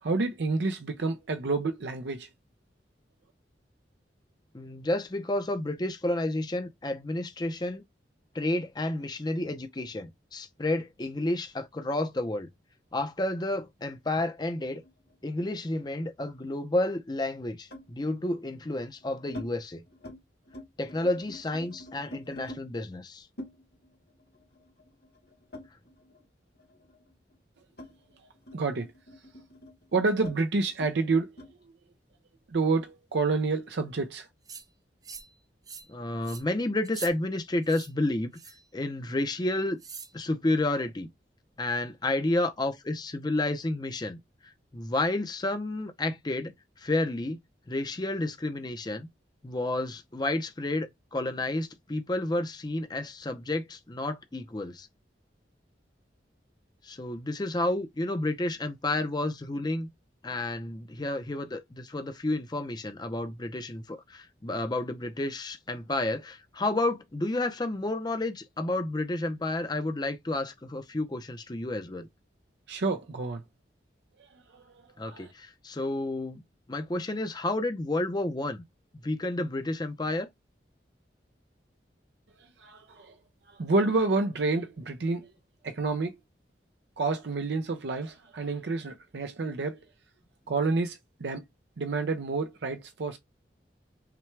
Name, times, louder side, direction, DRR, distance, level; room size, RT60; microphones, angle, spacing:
voice 1, 0.0-2.3 28.5-28.9 29.9-31.3 32.5-34.3 72.7-73.4 74.2-75.3 82.6-83.2 83.5-85.3 85.6-86.2 87.0-89.9 90.5-91.4 91.8-93.2, right 3 dB, 70° right, 0.5 m, -29 dB
voice 2, 4.5-7.8 8.3-12.5 12.9-14.8 15.2-19.8 20.8-23.3 35.9-38.3 38.7-39.8 40.1-41.1 41.6-44.2 44.7-47.4 47.7-49.1 49.4-54.9 56.8-59.9 60.2-72.1 75.0-76.4 76.7-78.6 79.0-80.3, left 2 dB, 25° left, 0.6 m, -31 dB
sound 1, 14.8-16.4 17.7-18.0 18.7-19.5 19.9-20.2 20.5-22.6 23.4-26.3 26.6-31.5, left 1 dB, 60° left, 1.3 m, -47 dB
sound 2, 34.5-34.6 35.0-35.3 35.7-35.9 36.2-36.4 36.8-37.1 37.6-37.9 38.3-38.7 39.8-40.1, right 6 dB, 20° right, 0.5 m, -43 dB
5.8 x 2.2 x 3.2 m
head